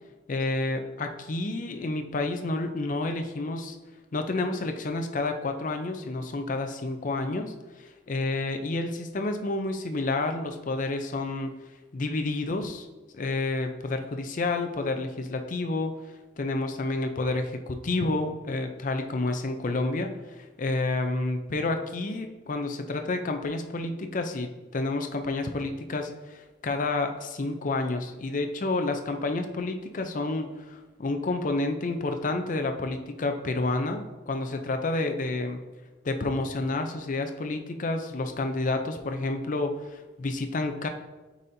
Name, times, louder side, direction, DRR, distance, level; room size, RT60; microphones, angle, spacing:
voice 1, 0.3-3.8 4.1-11.5 11.9-12.9 13.2-15.9 16.4-35.6 36.0-40.9, left 2 dB, 45° left, 6 dB, 0.5 m, -30 dB
8.6 x 4.2 x 2.7 m, 1.2 s
head